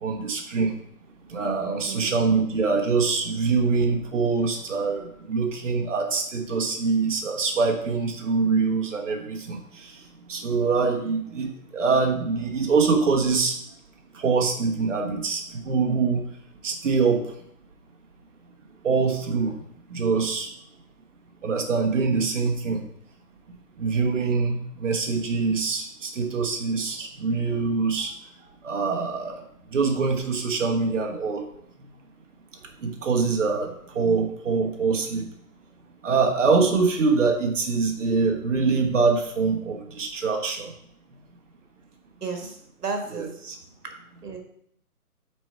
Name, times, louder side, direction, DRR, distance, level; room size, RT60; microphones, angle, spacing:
voice 1, 0.0-0.7 1.3-9.9 10.3-13.6 14.1-16.2 16.6-17.2 18.8-19.6 19.9-20.5 21.4-22.8 23.8-28.1 28.6-29.4 29.7-31.5 32.8-35.3 36.0-40.7 43.1-43.6, right 4 dB, 50° right, 2 dB, 1.3 m, -24 dB
voice 2, 42.2-43.3 44.2-44.4, right 4 dB, 80° right, 3 dB, 1.5 m, -33 dB
6.1 x 4.5 x 4.6 m, 0.69 s
hypercardioid pair, 155°, 46 cm